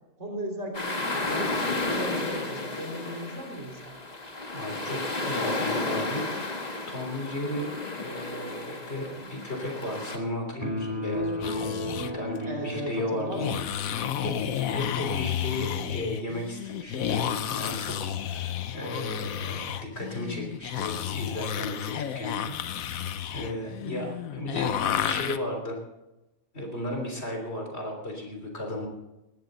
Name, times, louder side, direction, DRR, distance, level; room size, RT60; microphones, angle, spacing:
voice 1, 0.2-3.9 12.5-13.6, equal, 55° right, 2 dB, 3.4 m, -36 dB
sound 1, 0.7-10.2, left 2 dB, 30° left, 1.7 m, -32 dB
voice 2, 4.5-6.6 6.9-13.5 13.9-22.5 22.8-23.0 23.3-24.7 25.1-25.8 26.5-28.9, left 1 dB, 50° left, 1 dB, 3.8 m, -35 dB
sound 2, 10.6-14.2, left 1 dB, 15° right, 2.7 m, -34 dB
sound 3, 11.3-12.1 13.3-25.4, left 10 dB, 90° left, 1.2 m, -31 dB
20.0 x 16.0 x 4.0 m, 0.97 s
omnidirectional pair, 1.4 m